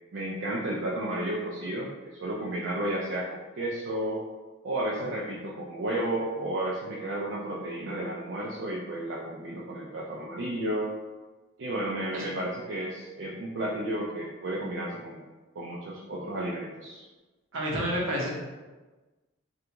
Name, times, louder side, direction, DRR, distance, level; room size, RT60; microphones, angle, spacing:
voice 1, 0.1-1.9 2.2-4.2 4.6-10.9 11.6-15.2 15.6-17.1, right 1 dB, 65° right, -5 dB, 0.4 m, -32 dB
voice 2, 17.5-18.3, equal, 80° right, -3 dB, 0.8 m, -29 dB
3.3 x 2.4 x 2.9 m, 1.2 s
head